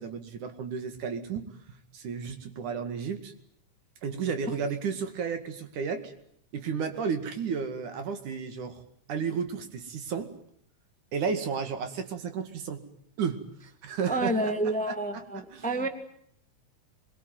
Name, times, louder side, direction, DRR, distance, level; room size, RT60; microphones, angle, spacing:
voice 1, 0.0-3.3 4.0-6.1 6.5-8.8 9.1-10.3 11.1-12.8 13.2-13.4 13.8-14.3 14.9-15.9, right 6 dB, 80° right, 8 dB, 3.6 m, -33 dB
voice 2, 14.1-15.9, right 1 dB, 5° left, 7 dB, 1.5 m, -29 dB
24.5 x 22.5 x 9.3 m, 0.69 s
omnidirectional pair, 3.5 m